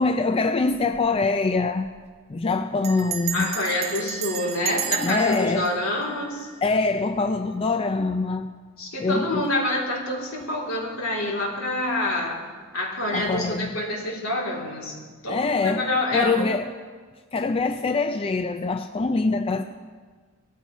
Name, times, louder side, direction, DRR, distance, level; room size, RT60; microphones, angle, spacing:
voice 1, 0.0-1.9 2.3-3.6 5.0-5.7 6.6-8.5 9.0-9.5 13.1-13.7 15.3-16.7 17.3-19.6, left 3 dB, 25° left, 8 dB, 0.3 m, -24 dB
Bell, 0.7-1.1 1.4-1.5 1.7-2.1 2.8-6.9, right 9 dB, 30° right, 0.5 m, -33 dB
voice 2, 3.3-6.5 8.8-12.4 12.7-15.0 15.2-16.5, left 1 dB, 75° left, -3 dB, 3.1 m, -27 dB
19.0 x 14.5 x 3.1 m, 1.5 s
head